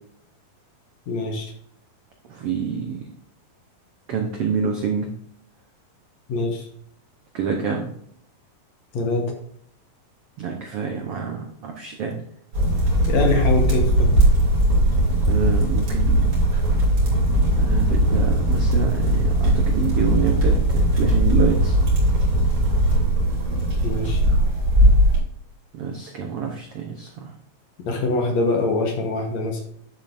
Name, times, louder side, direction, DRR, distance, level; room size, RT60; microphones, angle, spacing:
voice 1, 1.1-1.5 6.3-6.7 8.9-9.3 13.1-14.1 23.8-24.2 27.8-29.6, left 3 dB, 65° left, 2 dB, 2.2 m, -23 dB
voice 2, 2.2-3.1 4.1-5.1 7.3-7.9 10.4-12.2 15.3-16.3 17.6-21.8 25.7-27.3, right 6 dB, 75° right, 2 dB, 1.3 m, -27 dB
sound 1, 12.5-25.2, right 1 dB, 40° right, 3.6 m, -19 dB
11.5 x 7.3 x 2.6 m, 0.69 s
omnidirectional pair, 3.9 m